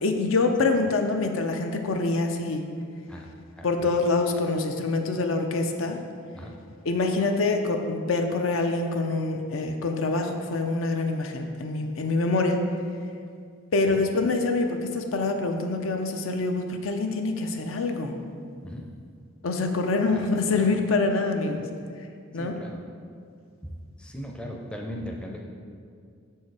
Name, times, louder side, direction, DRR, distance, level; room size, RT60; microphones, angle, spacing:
voice 1, 0.0-2.6 3.6-6.0 6.8-12.6 13.7-18.1 19.4-21.6 22.3-22.5, left 3 dB, 75° left, 5 dB, 0.6 m, -25 dB
voice 2, 22.4-22.8 23.6-23.7 24.0-25.4, equal, 5° left, 0 dB, 0.5 m, -38 dB
6.3 x 4.6 x 4.7 m, 2.2 s
head